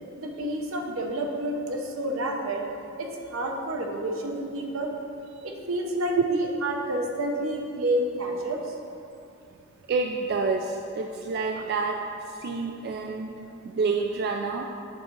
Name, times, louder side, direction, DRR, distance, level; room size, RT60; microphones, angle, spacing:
voice 1, 0.2-2.7 3.0-4.9 5.4-8.7, right 1 dB, 80° right, 1 dB, 0.8 m, -29 dB
voice 2, 9.9-12.0 12.3-14.7, right 4 dB, 50° right, 2 dB, 0.3 m, -28 dB
7.5 x 3.6 x 4.5 m, 2.5 s
head